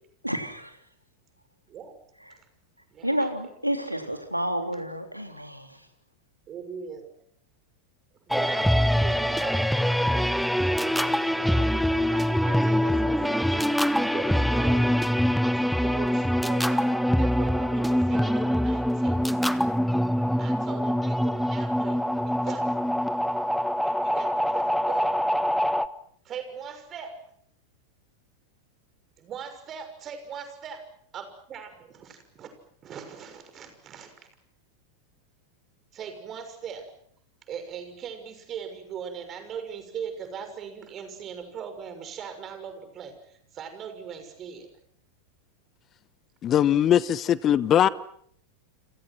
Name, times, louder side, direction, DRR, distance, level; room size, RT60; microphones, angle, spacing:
voice 1, 0.2-0.8 3.0-5.8, equal, 90° right, 3.4 m, -30 dB
voice 2, 2.9-3.3 6.5-7.0 8.2-11.7 12.1-15.0 15.5-19.4 20.4-23.1 23.8-25.1 26.2-27.2 29.2-32.5 32.8-34.3 35.9-36.9 37.5-44.7, right 7 dB, 30° right, 6.2 m, -40 dB
sound 1, 8.3-25.9, equal, ahead, 1.0 m, -24 dB
voice 3, 46.4-47.9, left 10 dB, 30° left, 1.1 m, -20 dB
30.0 x 27.0 x 6.2 m
figure-of-eight pair, 90°, 0 cm